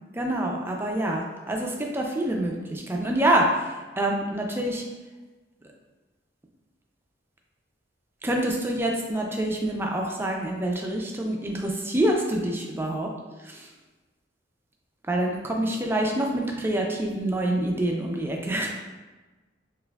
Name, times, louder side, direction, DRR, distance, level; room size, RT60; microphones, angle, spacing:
voice 1, 0.1-4.8 8.2-13.1 13.4-13.7 15.1-18.7, right 1 dB, 10° right, 0 dB, 0.4 m, -26 dB
4.4 x 2.5 x 2.3 m, 1.2 s
head